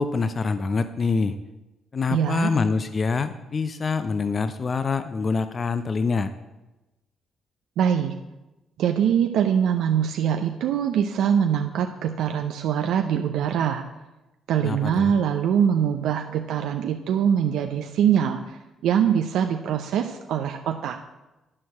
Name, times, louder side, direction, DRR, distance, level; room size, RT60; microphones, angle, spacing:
voice 1, 0.0-1.4 1.9-6.3 14.6-15.1, left 4 dB, 40° left, 11 dB, 0.6 m, -25 dB
voice 2, 2.1-2.5 7.8-8.1 8.8-13.8 14.5-21.0, right 8 dB, 85° right, 5 dB, 0.6 m, -23 dB
11.0 x 4.7 x 7.4 m, 1.0 s
cardioid pair, 90°, 0 cm